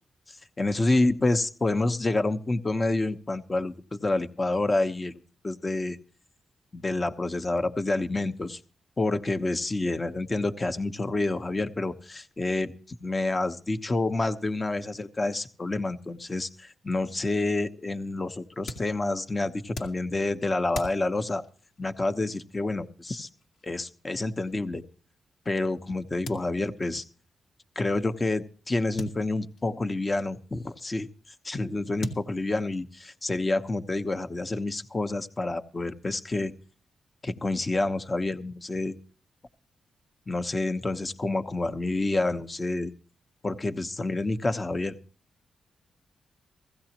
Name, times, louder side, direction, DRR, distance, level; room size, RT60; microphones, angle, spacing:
voice 1, 0.3-6.0 6.7-8.6 9.0-21.4 21.8-23.3 23.6-24.8 25.4-27.0 27.7-31.1 31.4-36.5 37.2-39.0 40.3-42.9 43.4-45.0, left 2 dB, 30° left, 8 dB, 1.1 m, -28 dB
sound 1, 18.6-25.6 26.2-27.0 27.3-27.4 27.5-27.6 29.0-30.1 31.2-31.3 32.0-32.9, left 1 dB, 80° left, 2.0 m, -42 dB
16.0 x 15.5 x 3.0 m, 0.40 s
cardioid pair, 85°, 0 cm